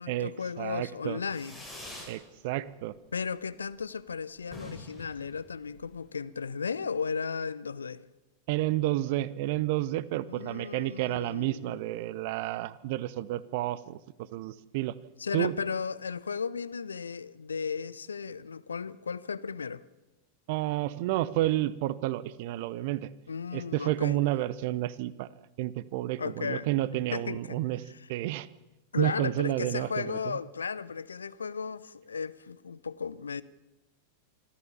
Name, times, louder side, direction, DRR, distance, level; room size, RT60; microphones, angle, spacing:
voice 1, 0.0-1.6 3.1-8.0 10.3-11.8 15.2-19.8 23.3-24.2 26.2-26.7 27.1-27.6 27.9-28.1 28.9-33.4, left 5 dB, 75° left, 0.7 m, -35 dB
voice 2, 0.6-1.2 2.1-2.9 8.5-14.0 14.3-14.9 15.3-15.5 20.5-23.1 23.5-25.3 25.6-27.8 28.1-28.5 29.0-30.4, right 15 dB, 50° right, 0.8 m, -30 dB
Fireworks, 1.3-2.2 2.5-3.1 3.4-3.5 3.7-3.8 4.1-4.2 4.4-6.1, left 1 dB, 5° left, 6.8 m, -46 dB
25.5 x 14.5 x 7.1 m
figure-of-eight pair, 90°, 0 cm